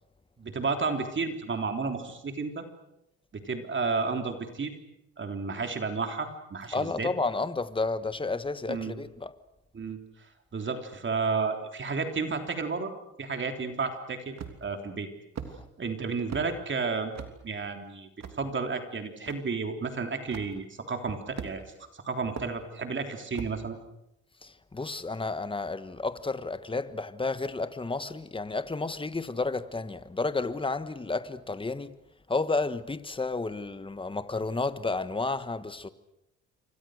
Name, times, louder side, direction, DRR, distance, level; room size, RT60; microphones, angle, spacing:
voice 1, 0.4-2.7 3.3-4.7 5.2-7.1 8.7-8.9 9.7-10.0 10.5-12.9 13.2-14.3 14.6-15.1 15.8-17.1 17.4-18.1 18.3-21.6 21.9-23.8, right 4 dB, 40° right, 3.5 m, -32 dB
voice 2, 6.7-9.3 15.5-15.7 24.4-32.0 32.3-35.9, left 3 dB, 15° left, 1.5 m, -31 dB
sound 1, 14.4-14.8 15.4-15.5 16.3-16.5 17.1-17.3 18.2-18.4 19.3-19.4 20.3-20.5 21.4-21.8 22.4-22.5 23.3-23.6, right 7 dB, 60° right, 3.3 m, -38 dB
28.5 x 24.0 x 6.5 m
cardioid pair, 90°, 30 cm